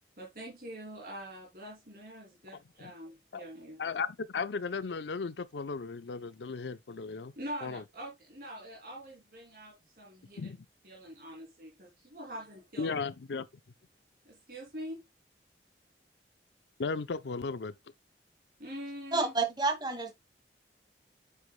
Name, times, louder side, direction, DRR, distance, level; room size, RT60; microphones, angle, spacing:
voice 1, 0.2-3.8 7.4-10.6 10.8-13.0 14.2-15.1 18.6-19.4, equal, 55° right, 2.8 m, -44 dB
voice 2, 3.8-7.3 7.6-7.8 10.4-10.6 12.8-13.5 16.8-17.7, left 4 dB, 85° left, 0.5 m, -35 dB
voice 3, 19.1-20.1, right 3 dB, 25° right, 1.9 m, -29 dB
8.0 x 7.1 x 2.2 m
head